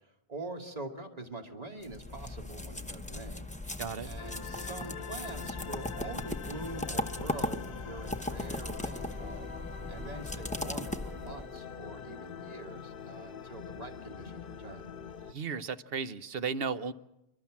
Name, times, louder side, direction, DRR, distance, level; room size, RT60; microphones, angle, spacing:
voice 1, 0.3-3.7 4.0-9.5 9.9-14.8, right 2 dB, 35° right, 2 dB, 2.3 m, -44 dB
sound 1, 1.8-11.6, left 1 dB, 10° left, 0.7 m, -38 dB
voice 2, 3.8-4.1 15.3-16.9, right 5 dB, 60° right, 11 dB, 1.1 m, -35 dB
sound 2, 4.2-15.3, left 6 dB, 55° left, 1.1 m, -44 dB
29.0 x 12.5 x 7.4 m, 0.89 s
omnidirectional pair, 1.1 m